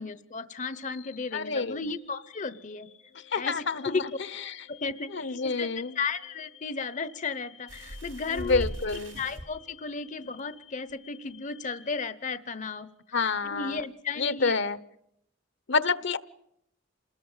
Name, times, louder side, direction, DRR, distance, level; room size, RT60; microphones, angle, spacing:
voice 1, 0.0-2.9 3.3-4.0 4.7-5.7 6.0-8.7 9.2-14.6, left 4 dB, 40° left, 13 dB, 0.9 m, -34 dB
sound 1, 0.7-12.8, left 10 dB, 80° left, 3.4 m, -54 dB
voice 2, 1.3-1.9 3.1-4.0 4.5-4.6 5.1-5.9 8.3-9.2 13.1-13.8 14.2-14.8 15.7-16.2, left 4 dB, 65° left, 16 dB, 1.2 m, -28 dB
sound 2, 7.7-9.4 10.4-10.5 10.9-11.0, equal, 85° right, 6.4 m, -38 dB
28.0 x 20.0 x 7.3 m, 0.77 s
head